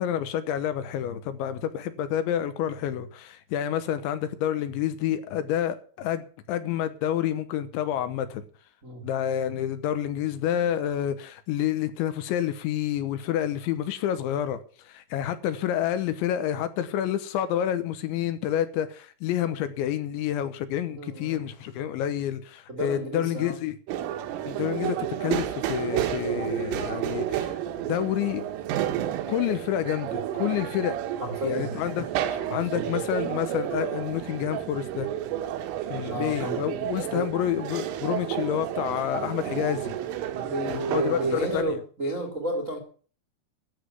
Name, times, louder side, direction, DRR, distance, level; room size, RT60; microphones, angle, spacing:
voice 1, 0.0-8.4 9.0-23.8 24.5-27.5 27.9-28.4 29.3-31.0 31.4-35.1 35.9-39.9 40.7-41.7, left 10 dB, 75° left, 3.1 m, -29 dB
voice 2, 21.0-21.4 22.7-23.6 31.2-31.8 32.5-33.0 36.0-37.3 40.3-42.8, right 2 dB, 35° right, 1.1 m, -32 dB
sound 1, 23.9-41.6, right 11 dB, 80° right, 3.8 m, -31 dB
13.0 x 7.4 x 9.5 m
omnidirectional pair, 5.8 m